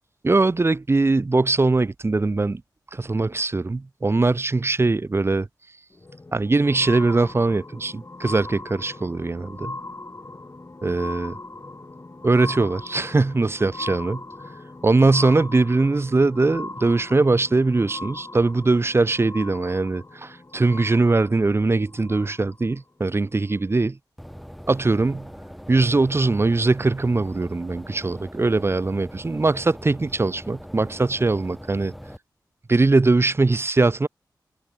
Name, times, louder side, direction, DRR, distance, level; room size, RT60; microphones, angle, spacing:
voice 1, 0.2-2.6 2.9-5.5 6.3-9.8 10.8-11.4 12.2-14.2 14.8-23.9 24.7-25.3 25.7-31.9 32.7-34.1, right 3 dB, 35° right, 0.6 m, -21 dB
sound 1, 5.9-22.8 23.5-23.6, left 2 dB, 35° left, 5.0 m, -39 dB
sound 2, 24.2-32.2, equal, ahead, 2.4 m, -41 dB
cardioid pair, 40°, 8 cm